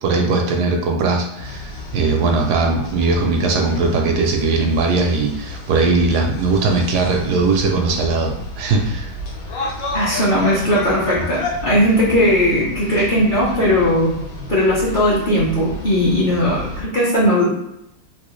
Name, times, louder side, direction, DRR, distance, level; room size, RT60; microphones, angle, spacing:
voice 1, 0.0-9.1, right 3 dB, 75° right, 2 dB, 1.1 m, -19 dB
sound 1, 1.4-16.8, left 2 dB, 90° left, 1.4 m, -31 dB
voice 2, 9.9-14.2 14.5-17.5, equal, 35° left, -8 dB, 0.9 m, -18 dB
3.3 x 2.7 x 3.1 m, 0.81 s
omnidirectional pair, 1.9 m